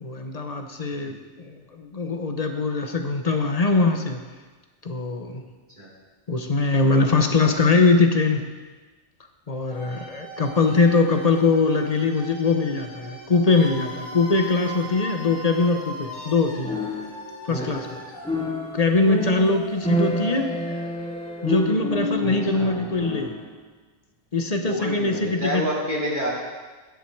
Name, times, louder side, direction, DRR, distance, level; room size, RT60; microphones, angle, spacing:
voice 1, 0.0-4.2 4.8-5.4 6.3-8.4 9.5-16.8 17.5-18.0 18.7-20.5 21.4-23.3 24.3-25.6, left 3 dB, 35° left, 5 dB, 0.8 m, -22 dB
sound 1, 9.7-22.5, equal, 75° left, 2.7 m, -40 dB
sound 2, 16.6-18.0 18.2-23.5, left 1 dB, 5° left, 0.7 m, -29 dB
voice 2, 24.7-26.3, equal, 35° right, -6 dB, 2.7 m, -28 dB
10.5 x 10.0 x 4.5 m, 1.3 s
omnidirectional pair, 1.3 m